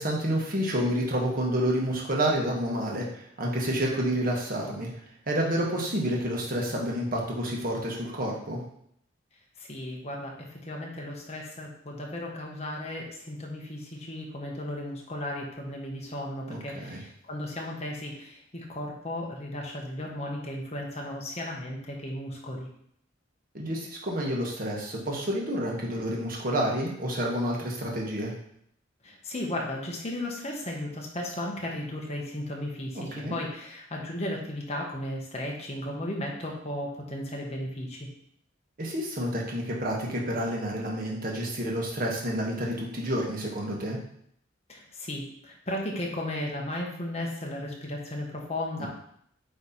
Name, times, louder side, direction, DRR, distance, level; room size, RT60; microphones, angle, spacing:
voice 1, 0.0-3.1 3.4-4.9 5.3-8.6 16.5-17.0 23.5-28.3 32.9-33.4 38.8-44.0 48.8-48.9, equal, 50° right, -2 dB, 1.6 m, -29 dB
voice 2, 9.6-22.7 29.0-38.1 44.7-48.9, left 1 dB, 35° left, -1 dB, 1.5 m, -35 dB
9.0 x 3.4 x 4.3 m, 0.69 s
head